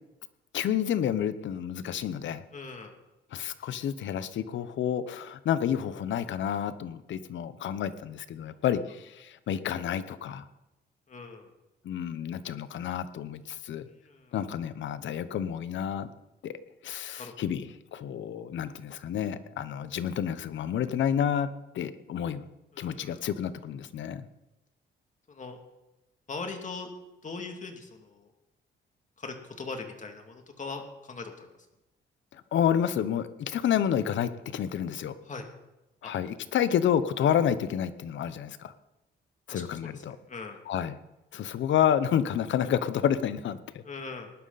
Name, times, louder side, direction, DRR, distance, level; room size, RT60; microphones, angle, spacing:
voice 1, 0.5-2.4 3.3-10.4 11.8-13.9 14.3-16.1 16.4-16.6 16.8-22.5 22.8-24.2 32.3-35.1 36.0-38.7 39.5-40.2 40.7-41.0 41.3-43.8, left 9 dB, 70° left, 13 dB, 1.0 m, -29 dB
voice 2, 2.5-2.9 11.1-11.5 13.9-14.3 17.2-17.3 22.7-23.2 25.3-25.6 26.3-26.9 27.2-28.3 29.2-31.5 35.3-35.5 36.0-36.1 39.5-39.9 40.3-40.6 43.8-44.3, left 4 dB, 40° left, 4 dB, 2.7 m, -40 dB
19.0 x 11.5 x 4.2 m, 0.96 s
cardioid pair, 90°, 20 cm